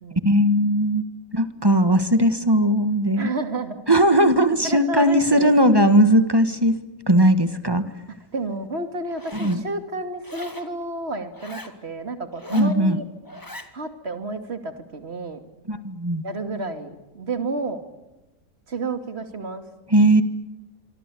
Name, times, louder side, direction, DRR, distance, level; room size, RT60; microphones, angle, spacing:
voice 1, 0.2-1.0 1.3-3.3 3.9-6.8 7.1-7.8 9.4-9.6 12.5-13.0 15.7-16.2 19.9-20.2, right 1 dB, 15° right, 11 dB, 1.5 m, -18 dB
voice 2, 3.2-3.9 4.6-5.5 8.3-13.0 13.7-15.4 16.2-17.9 18.7-19.6, right 2 dB, 45° right, 8 dB, 2.6 m, -30 dB
Zipper (clothing), 9.0-9.6 10.2-10.7 11.3-11.8 12.3-12.8 13.2-13.7, left 1 dB, 15° left, 1.8 m, -40 dB
25.5 x 25.0 x 8.4 m, 1.0 s
omnidirectional pair, 1.6 m